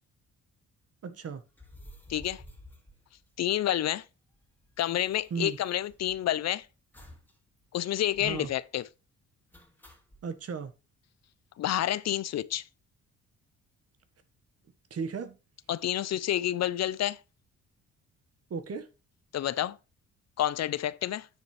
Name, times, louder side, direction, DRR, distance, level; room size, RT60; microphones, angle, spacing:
voice 1, 1.0-1.4 5.3-5.6 8.2-8.5 10.2-10.7 14.9-15.3 18.5-18.9, right 6 dB, 50° right, 1.6 m, -35 dB
sound 1, 1.5-3.8 4.0-4.1 4.3-6.4 6.9-7.4 7.6-7.7 8.1-8.6 9.5-10.2, left 1 dB, 5° left, 2.5 m, -53 dB
voice 2, 2.1-2.4 3.4-4.0 4.8-6.7 7.7-8.9 11.6-12.6 15.7-17.2 19.3-19.8 20.4-21.3, left 12 dB, 60° left, 0.6 m, -29 dB
9.7 x 6.8 x 3.3 m
cardioid pair, 90°, 30 cm